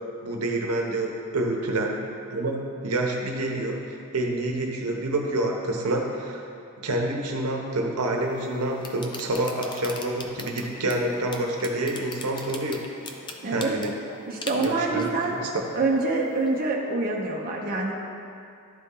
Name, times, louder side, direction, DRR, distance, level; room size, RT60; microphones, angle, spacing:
voice 1, 0.2-2.0 2.3-6.4 6.8-12.8 13.5-13.9 14.6-15.5, right 1 dB, 75° right, 1 dB, 0.9 m, -28 dB
sound 1, 8.1-16.7, left 2 dB, 20° left, 0.5 m, -42 dB
voice 2, 13.4-13.8 14.2-15.3 15.7-17.9, right 3 dB, 40° right, -2 dB, 0.7 m, -26 dB
11.5 x 4.2 x 3.7 m, 2.6 s
head